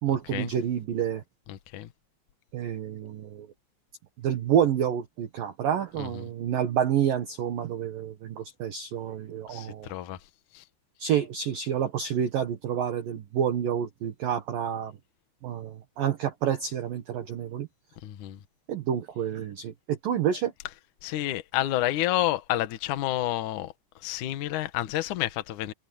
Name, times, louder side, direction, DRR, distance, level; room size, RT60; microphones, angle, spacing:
voice 1, 0.0-1.2 2.5-3.5 4.2-9.9 11.0-14.9 15.4-17.7 18.7-20.5, right 9 dB, 60° right, 2.5 m, -28 dB
voice 2, 1.5-1.9 6.0-6.3 9.5-10.2 10.5-10.6 18.0-18.4 21.0-23.7 24.0-25.7, left 14 dB, 90° left, 1.7 m, -29 dB
omnidirectional pair, 5.8 m